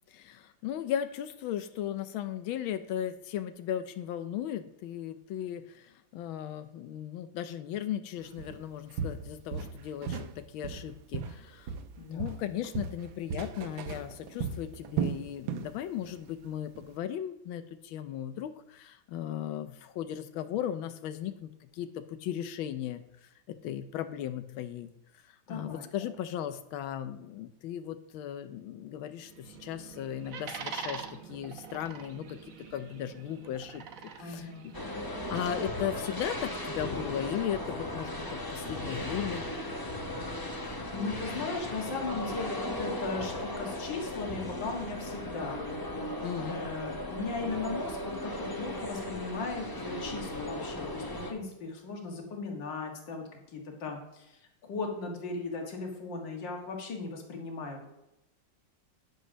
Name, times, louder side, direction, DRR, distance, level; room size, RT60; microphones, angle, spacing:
voice 1, 0.1-11.7 12.1-23.0 23.5-24.9 25.3-32.4 32.7-33.8 34.2-39.5 46.2-46.6, left 10 dB, 85° left, 10 dB, 1.5 m, -37 dB
Walk footsteps, 8.4-8.6 9.0-10.3 10.6-11.9 12.2-15.7 16.0-16.3 16.7-16.8, right 7 dB, 80° right, 1.5 m, -35 dB
voice 2, 12.0-12.3 25.5-25.9 34.2-34.7 40.5-45.7 46.5-57.9, left 4 dB, 65° left, 1 dB, 2.3 m, -37 dB
sound 1, 29.2-35.5, right 6 dB, 55° right, 1.1 m, -44 dB
sound 2, 34.7-51.3, left 1 dB, 25° left, 0.5 m, -37 dB
10.0 x 5.3 x 6.2 m, 0.88 s
omnidirectional pair, 2.2 m